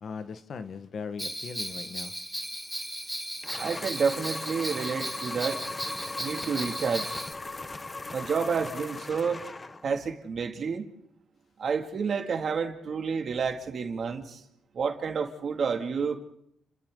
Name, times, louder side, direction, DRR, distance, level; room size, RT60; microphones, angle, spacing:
voice 1, 0.0-2.1, left 5 dB, 60° left, 10 dB, 1.5 m, -39 dB
Bell, 1.2-7.3, equal, ahead, 1.5 m, -36 dB
sound 1, 3.4-10.0, left 3 dB, 25° left, 1.1 m, -38 dB
voice 2, 3.6-5.6 6.2-7.2 8.1-9.4 9.8-10.9 11.6-14.4 14.7-16.2, right 5 dB, 55° right, 5 dB, 2.5 m, -30 dB
30.0 x 28.5 x 3.9 m, 0.75 s
cardioid pair, 85°, 0 cm